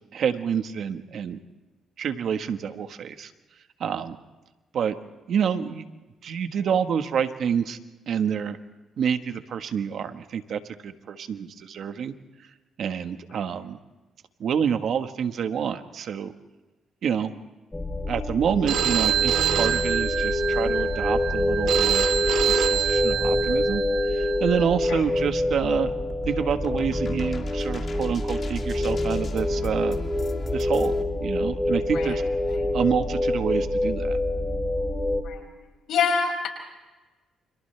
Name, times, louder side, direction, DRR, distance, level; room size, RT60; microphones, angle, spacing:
voice 1, 0.1-1.4 2.0-3.3 3.8-4.2 4.7-5.0 5.3-5.8 6.2-7.8 8.1-8.6 9.0-12.1 12.8-13.8 14.4-16.3 17.0-17.4 18.1-25.9 26.3-30.0 30.5-32.2 32.7-34.2, right 7 dB, 65° right, 8 dB, 1.4 m, -28 dB
sound 1, 17.7-35.2, left 1 dB, 10° left, 2.7 m, -26 dB
Telephone, 18.7-24.6, right 10 dB, 85° right, 1.5 m, -26 dB
sound 2, 26.1-31.0, left 5 dB, 45° left, 2.2 m, -40 dB
voice 2, 35.9-36.5, left 6 dB, 70° left, 3 dB, 6.1 m, -25 dB
29.5 x 26.5 x 3.4 m, 1.1 s
cardioid pair, 90°, 0 cm